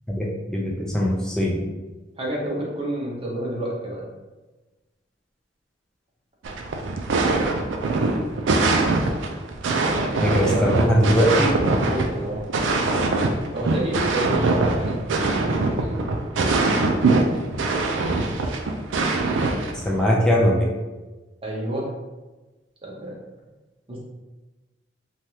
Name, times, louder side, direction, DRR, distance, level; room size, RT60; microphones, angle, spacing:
voice 1, 0.1-1.6 10.2-11.5 19.9-20.7, equal, 5° left, -3 dB, 0.3 m, -20 dB
voice 2, 2.2-4.1 9.9-10.8 11.8-12.4 13.5-14.9 15.8-16.0 21.4-21.9 22.8-23.2 23.9-24.0, right 1 dB, 30° right, -4 dB, 0.7 m, -29 dB
sound 1, 6.4-20.0, right 3 dB, 75° right, 0.4 m, -22 dB
3.2 x 2.3 x 2.7 m, 1.2 s
head